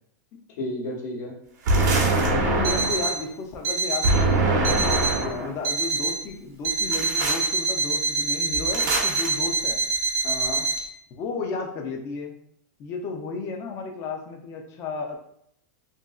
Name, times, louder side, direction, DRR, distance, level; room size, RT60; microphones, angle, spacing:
voice 1, 0.6-1.3 5.2-5.5 10.2-10.6, left 1 dB, 75° left, -2 dB, 1.0 m, -32 dB
voice 2, 1.7-2.0 2.3-4.7 5.0-9.8 11.1-12.3 12.8-15.2, left 4 dB, 30° left, 3 dB, 0.4 m, -33 dB
sound 1, 1.7-3.1 4.0-5.5 6.9-7.5 8.7-9.3, right 2 dB, 85° right, 0.7 m, -23 dB
Alarm, 2.6-3.2 3.6-4.2 4.6-5.2 5.6-6.2 6.6-10.8, right 3 dB, 25° right, 0.5 m, -26 dB
2.7 x 2.5 x 2.3 m, 0.73 s
supercardioid pair, 155°, 9 cm